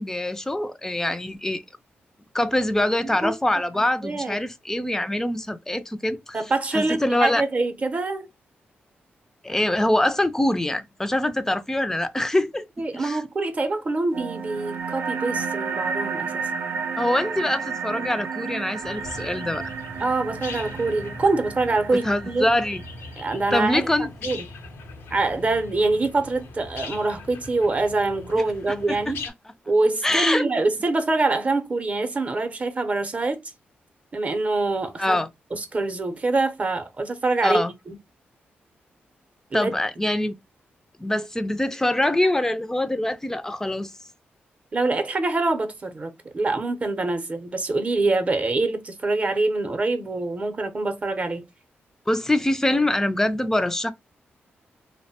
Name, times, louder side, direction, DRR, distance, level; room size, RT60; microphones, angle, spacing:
voice 1, 0.0-1.6 2.3-6.4 6.7-7.4 9.4-12.7 12.9-13.2 17.0-19.7 22.0-22.8 23.5-24.1 28.9-29.1 30.0-30.5 35.0-35.3 37.4-37.7 39.5-40.3 41.0-43.9 52.1-53.9, left 1 dB, 10° left, 0.4 m, -24 dB
voice 2, 3.0-3.3 3.7-4.4 6.3-8.3 12.2-12.3 12.8-16.5 20.0-22.5 23.2-24.5 25.1-29.2 29.7-33.4 34.1-35.2 35.5-37.6 37.9-38.0 39.5-39.7 44.7-51.5, right 3 dB, 35° right, 0.6 m, -25 dB
sound 1, 14.1-23.1, right 5 dB, 75° right, 0.4 m, -32 dB
sound 2, 18.8-29.3, left 3 dB, 90° left, 0.6 m, -40 dB
2.6 x 2.1 x 2.7 m
cardioid pair, 75°, 4 cm